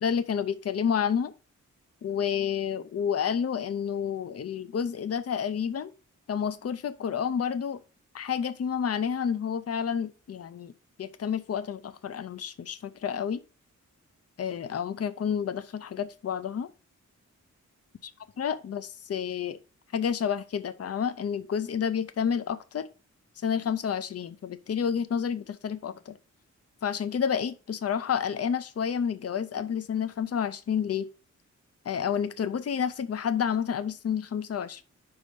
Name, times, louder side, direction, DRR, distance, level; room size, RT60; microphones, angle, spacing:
voice 1, 0.0-1.3 2.0-5.9 6.3-7.8 8.1-10.7 11.0-13.4 14.4-16.7 18.4-19.6 19.9-22.9 23.4-26.2 26.8-31.1 31.9-34.8, left 7 dB, 55° left, 0.6 m, -30 dB
5.2 x 4.9 x 5.3 m
wide cardioid pair, 135°, 31 cm